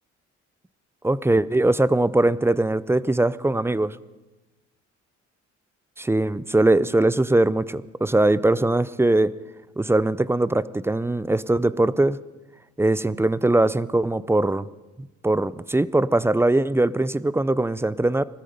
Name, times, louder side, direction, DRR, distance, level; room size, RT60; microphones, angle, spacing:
voice 1, 1.0-4.0 6.0-9.3 9.8-12.2 12.8-14.7 15.0-18.2, right 2 dB, 10° right, 18 dB, 0.5 m, -21 dB
20.0 x 13.0 x 5.2 m, 1.1 s
cardioid pair, 90°, 30 cm